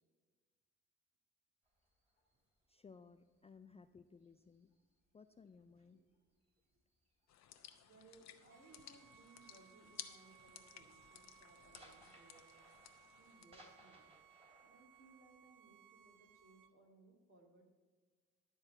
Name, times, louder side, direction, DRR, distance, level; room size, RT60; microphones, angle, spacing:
sound 1, 1.6-5.5 5.8-9.3 9.5-9.9 10.2-16.6, equal, 20° right, 2.9 m, -67 dB
voice 1, 2.7-4.7 5.1-6.0, left 5 dB, 20° left, 10 dB, 0.3 m, -60 dB
sound 2, 7.3-13.5, left 10 dB, 60° left, 0.8 m, -57 dB
voice 2, 7.5-12.6 13.1-14.2 14.6-17.7, right 3 dB, 45° right, 0 dB, 2.3 m, -65 dB
Bowed string instrument, 8.5-16.7, right 10 dB, 85° right, 0.6 m, -65 dB
11.5 x 4.1 x 7.8 m, 1.4 s
cardioid pair, 90°, 30 cm